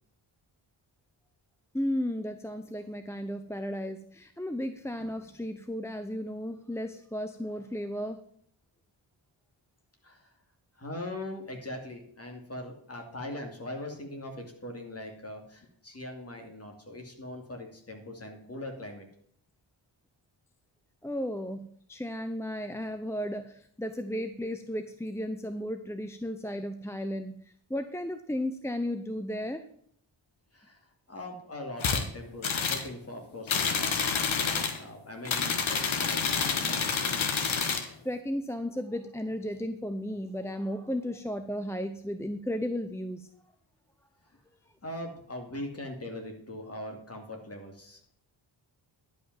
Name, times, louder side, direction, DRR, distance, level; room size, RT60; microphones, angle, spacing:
voice 1, 1.7-8.2 21.0-27.4 27.7-29.6 38.0-43.3, equal, 5° left, 8 dB, 0.6 m, -34 dB
voice 2, 10.0-10.3 10.7-19.1 30.5-37.3 44.3-44.4 44.8-48.1, left 1 dB, 30° left, 2 dB, 2.6 m, -41 dB
sound 1, 31.8-32.0 32.4-32.9 33.5-34.8 35.2-37.9, left 6 dB, 80° left, 1.6 m, -28 dB
11.0 x 5.4 x 7.4 m, 0.64 s
wide cardioid pair, 115°, 47 cm